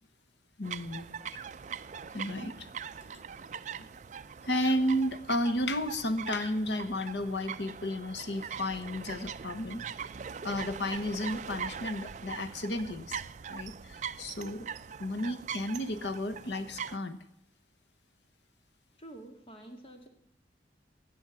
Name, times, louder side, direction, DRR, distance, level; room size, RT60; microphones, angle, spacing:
voice 1, 0.6-1.1 2.1-2.7 3.1-3.2 3.8-3.9 4.4-9.8 10.4-13.2 13.5-14.7 15.0-17.2, left 1 dB, 75° left, 11 dB, 1.1 m, -33 dB
sound 1, 0.6-17.0, right 7 dB, 40° right, 0.4 m, -42 dB
voice 2, 19.0-20.1, right 1 dB, 30° left, 4 dB, 1.9 m, -48 dB
16.0 x 6.3 x 9.2 m, 0.79 s
head